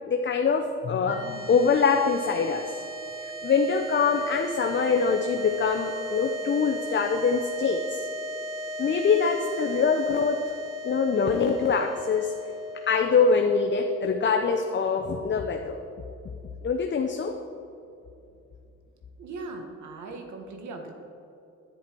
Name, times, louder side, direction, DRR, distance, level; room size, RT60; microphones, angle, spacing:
voice 1, 0.1-2.6 3.4-8.1 8.8-10.4 10.8-12.3 12.9-15.8 16.6-17.3, left 5 dB, 40° left, 3 dB, 0.8 m, -24 dB
sound 1, 1.0-15.5, equal, 45° right, 1.6 m, -37 dB
voice 2, 19.2-20.9, right 3 dB, 70° right, 4 dB, 1.5 m, -39 dB
10.5 x 9.8 x 4.6 m, 2.7 s
cardioid pair, 90°, 30 cm